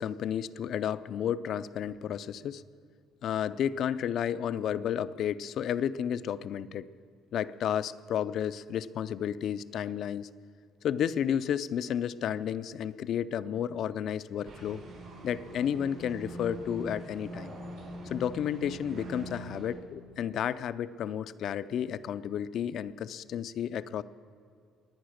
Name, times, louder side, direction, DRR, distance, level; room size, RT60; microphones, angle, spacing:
voice 1, 0.0-2.6 3.2-6.9 7.3-10.3 10.8-14.8 15.2-17.5 18.0-24.0, left 9 dB, 60° left, 14 dB, 0.5 m, -32 dB
sound 1, 14.4-19.7, right 1 dB, 70° right, 5.3 m, -43 dB
22.0 x 9.3 x 6.5 m, 2.2 s
cardioid pair, 115°, 0 cm